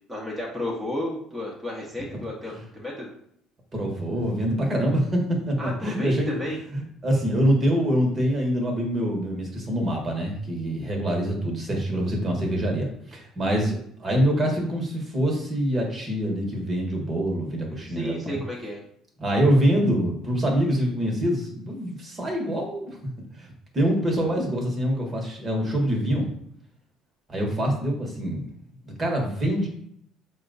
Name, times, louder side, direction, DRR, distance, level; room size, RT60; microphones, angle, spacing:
voice 1, 0.1-3.1 5.6-6.6 17.9-18.8, left 1 dB, 5° right, -4 dB, 1.0 m, -32 dB
voice 2, 3.7-6.4 6.7-18.4 19.2-23.0 23.3-23.5 23.7-26.3 27.3-28.5 28.8-29.7, equal, 30° right, 1 dB, 1.3 m, -25 dB
4.3 x 2.3 x 4.0 m, 0.69 s
cardioid pair, 105°, 0 cm